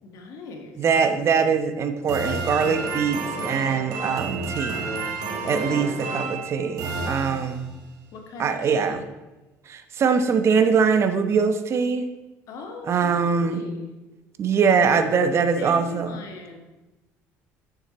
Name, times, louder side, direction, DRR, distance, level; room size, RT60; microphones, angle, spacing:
voice 1, 0.0-0.8 5.5-6.1 8.1-9.0 12.5-13.9 14.9-16.6, left 3 dB, 65° left, 3 dB, 1.7 m, -39 dB
voice 2, 0.8-4.8 5.4-7.7 8.4-9.0 9.7-12.1 12.9-13.7 14.4-16.1, right 5 dB, 45° right, 8 dB, 1.0 m, -22 dB
sound 1, 2.1-7.8, right 4 dB, 70° right, 1.7 m, -30 dB
9.7 x 6.5 x 4.3 m, 1.1 s
supercardioid pair, 100°, 6 cm